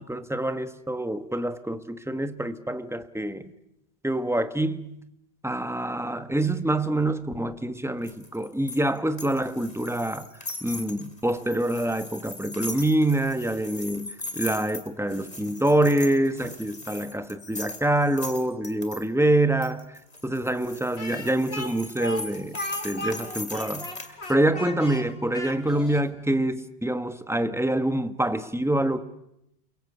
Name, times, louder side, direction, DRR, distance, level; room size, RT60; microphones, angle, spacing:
voice 1, 0.0-3.4 4.0-5.0 5.4-10.3 10.6-22.6 22.8-23.9 24.3-29.0, right 1 dB, 5° right, 1.2 m, -26 dB
sound 1, 8.0-19.0 19.6-24.3, left 2 dB, 40° left, 2.8 m, -39 dB
Speech, 21.0-26.1, left 1 dB, 85° left, 2.7 m, -36 dB
29.0 x 23.0 x 8.3 m
omnidirectional pair, 1.0 m